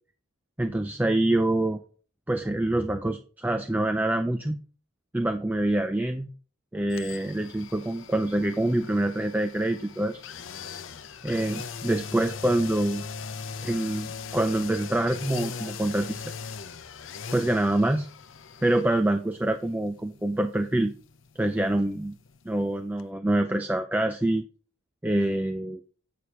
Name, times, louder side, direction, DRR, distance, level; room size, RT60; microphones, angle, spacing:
voice 1, 0.6-1.8 2.3-4.6 5.1-6.3 6.7-10.2 11.2-13.0 13.6-16.3 17.3-18.1 18.6-20.9 21.4-22.1 22.5-24.4 25.0-25.8, right 1 dB, 10° right, 7 dB, 0.4 m, -26 dB
sound 1, 6.9-22.7 23.0-23.1, left 5 dB, 65° left, 0.7 m, -40 dB
8.4 x 5.5 x 4.7 m, 0.41 s
head